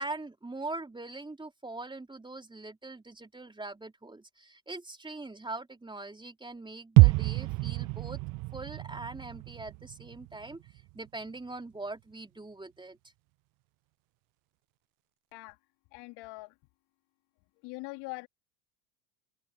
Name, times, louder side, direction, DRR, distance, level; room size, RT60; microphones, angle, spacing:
voice 1, 0.0-8.2 8.5-10.6 10.9-13.0, right 2 dB, 10° right, 3.5 m, -42 dB
sound 1, 7.0-10.9 11.2-11.3, right 24 dB, 45° right, 0.6 m, -26 dB
voice 2, 15.9-16.5 17.6-18.3, left 25 dB, 60° left, 3.7 m, -42 dB
open air
hypercardioid pair, 90°, 45 cm